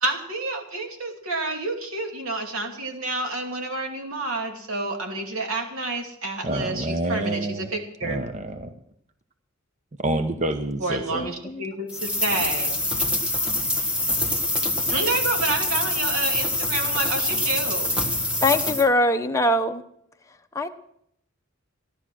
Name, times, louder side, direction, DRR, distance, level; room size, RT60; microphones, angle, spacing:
voice 1, 0.0-8.2 10.8-12.8 14.9-17.9, right 2 dB, 85° right, 3 dB, 2.7 m, -29 dB
voice 2, 6.4-7.7 8.0-8.7 10.0-11.2, right 1 dB, 35° right, 8 dB, 0.8 m, -27 dB
voice 3, 11.1-11.6 18.4-19.8 20.5-20.7, left 1 dB, 15° left, 4 dB, 0.8 m, -22 dB
sound 1, 11.9-18.8, left 1 dB, 5° right, 1.5 m, -25 dB
16.0 x 11.5 x 6.2 m, 0.72 s
head